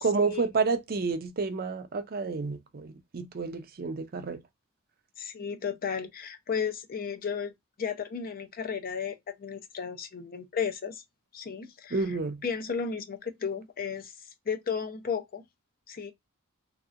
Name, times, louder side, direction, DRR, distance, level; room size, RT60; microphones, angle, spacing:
voice 1, 0.0-4.4 11.9-12.4, right 4 dB, 45° right, 0.5 m, -30 dB
voice 2, 5.2-11.0 11.3-14.1 14.5-15.4 15.9-16.1, left 6 dB, 40° left, 0.5 m, -34 dB
3.2 x 2.8 x 2.4 m
head